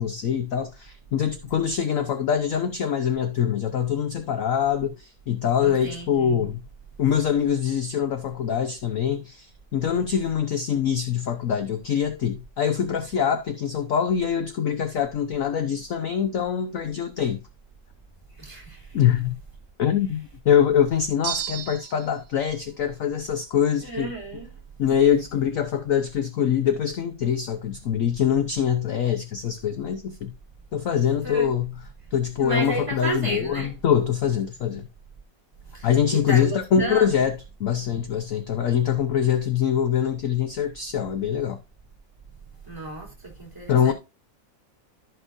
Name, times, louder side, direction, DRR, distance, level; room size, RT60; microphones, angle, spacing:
voice 1, 0.0-6.6 7.0-17.4 18.9-19.4 19.8-24.1 24.8-30.3 30.7-31.7 32.1-34.9 35.8-41.6 43.7-43.9, left 8 dB, 60° left, 1.0 m, -24 dB
voice 2, 5.6-6.5 18.4-19.0 23.8-24.5 31.2-31.5 32.4-33.7 35.7-37.2 42.6-43.9, right 1 dB, 10° right, 3.3 m, -33 dB
sound 1, 21.2-22.2, right 11 dB, 70° right, 1.5 m, -32 dB
14.5 x 5.4 x 2.6 m
omnidirectional pair, 2.0 m